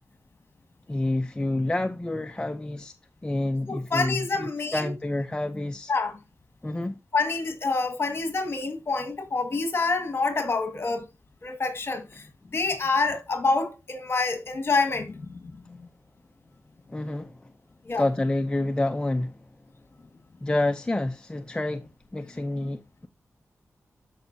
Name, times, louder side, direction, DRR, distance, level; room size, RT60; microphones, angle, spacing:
voice 1, 0.9-2.9 3.2-5.9 6.6-7.0 16.9-17.4 18.0-19.3 20.4-23.1, left 2 dB, 15° left, 0.5 m, -28 dB
voice 2, 3.7-4.9 5.9-6.2 7.1-11.1 11.4-12.3 12.5-15.9 17.8-18.0, left 3 dB, 45° left, 1.9 m, -27 dB
13.0 x 5.4 x 2.7 m
wide cardioid pair, 105°, 5 cm